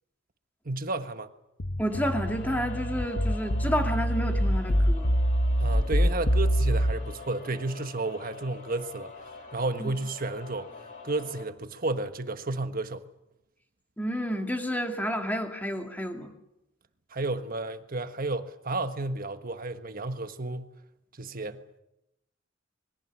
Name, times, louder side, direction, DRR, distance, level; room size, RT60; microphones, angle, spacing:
voice 1, 0.6-1.3 5.6-9.1 9.5-10.7 11.0-13.0 17.1-20.7 21.2-21.6, right 2 dB, 45° right, 1.4 m, -32 dB
sound 1, 1.6-6.9, equal, 70° left, 1.4 m, -25 dB
voice 2, 1.8-5.1 9.8-9.9 14.0-16.3, equal, 10° left, 2.4 m, -30 dB
sound 2, 1.9-11.4, left 4 dB, 40° left, 2.9 m, -45 dB
26.5 x 22.0 x 7.3 m
head